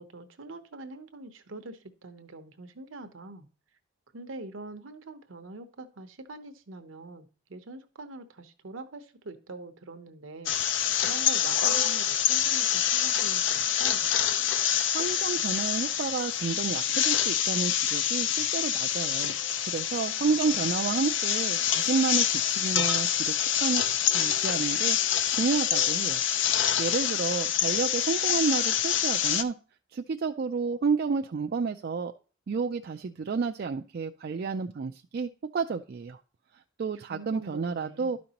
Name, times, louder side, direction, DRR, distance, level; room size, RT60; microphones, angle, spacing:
voice 1, 0.0-3.5 4.1-10.5 11.0-14.1 20.2-20.9 37.1-38.2, right 2 dB, 70° right, 9 dB, 0.8 m, -44 dB
sound 1, 10.5-29.4, left 9 dB, 60° left, 0.5 m, -26 dB
voice 2, 14.9-19.4 19.6-23.3 23.6-25.0 25.3-26.2 26.8-29.5 29.9-32.1 32.5-36.2 36.8-38.2, right 5 dB, 50° right, 4 dB, 0.4 m, -30 dB
12.0 x 5.2 x 2.9 m, 0.38 s
head